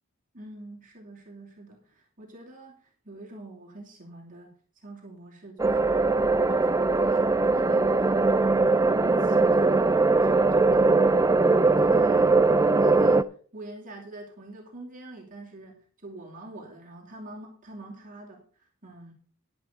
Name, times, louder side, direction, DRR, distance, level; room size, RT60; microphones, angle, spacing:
voice 1, 0.3-6.1 6.5-19.1, right 2 dB, 40° right, -1 dB, 3.0 m, -45 dB
sound 1, 5.6-13.2, right 3 dB, 15° right, 0.4 m, -21 dB
11.5 x 11.0 x 3.9 m, 0.42 s
head